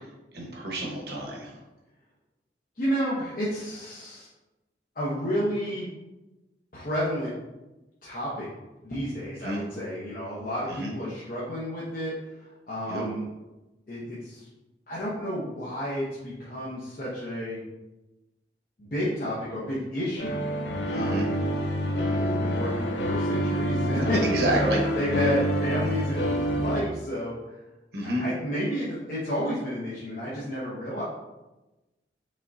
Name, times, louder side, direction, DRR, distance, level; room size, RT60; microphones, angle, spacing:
voice 1, 0.3-1.5 9.4-9.6 10.7-10.9 12.9-13.1 20.9-21.3 24.2-24.8 27.9-28.2, right 1 dB, 60° right, -2 dB, 1.2 m, -30 dB
voice 2, 2.8-4.3 5.0-5.9 6.7-7.3 8.0-8.5 8.8-13.3 13.9-14.5 14.9-17.6 18.8-20.4 20.9-21.5 21.8-24.7 25.0-27.3 28.0-31.0, equal, 50° left, -8 dB, 1.0 m, -31 dB
sound 1, 20.2-26.8, equal, 75° left, 0.7 m, -27 dB
5.3 x 3.6 x 2.7 m, 1.0 s
head